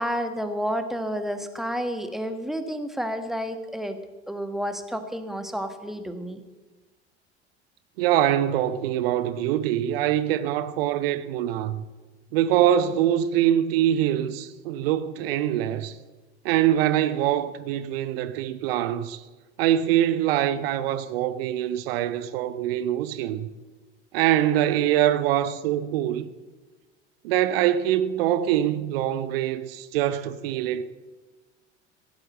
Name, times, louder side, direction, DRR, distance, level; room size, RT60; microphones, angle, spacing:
voice 1, 0.0-4.0 4.3-6.4, equal, ahead, 1.4 m, -30 dB
voice 2, 8.0-11.8 12.3-16.0 16.4-19.2 19.6-23.5 24.1-26.3 27.2-30.8, right 11 dB, 55° right, 0.9 m, -24 dB
16.0 x 7.8 x 7.6 m
figure-of-eight pair, 70°, 34 cm